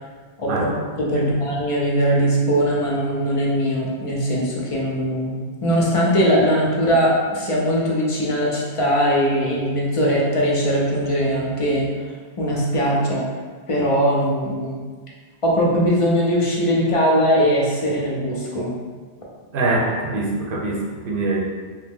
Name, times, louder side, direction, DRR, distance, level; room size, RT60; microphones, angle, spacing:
voice 1, 1.0-5.3 5.6-11.9 12.4-13.3 13.7-14.8 15.4-18.7, equal, 45° left, -4 dB, 0.5 m, -20 dB
voice 2, 19.5-21.5, right 2 dB, 65° right, -2 dB, 0.7 m, -23 dB
2.8 x 2.0 x 3.5 m, 1.5 s
omnidirectional pair, 1.1 m